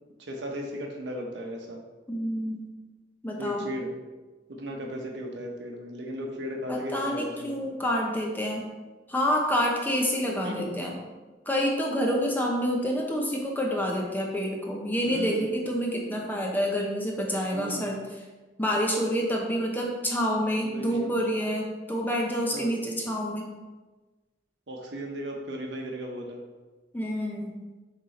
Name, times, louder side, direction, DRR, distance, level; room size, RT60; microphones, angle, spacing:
voice 1, 0.2-1.8 3.4-3.9 4.5-7.7 10.4-10.7 15.0-15.5 17.5-17.9 20.7-21.1 22.5-22.7 24.7-26.4, equal, 80° right, 0 dB, 1.1 m, -36 dB
voice 2, 2.1-2.7 3.2-3.7 6.7-8.7 9.1-11.0 11.5-18.0 18.6-23.5 26.9-27.5, equal, 10° left, -1 dB, 0.9 m, -28 dB
6.4 x 3.7 x 4.2 m, 1.2 s
head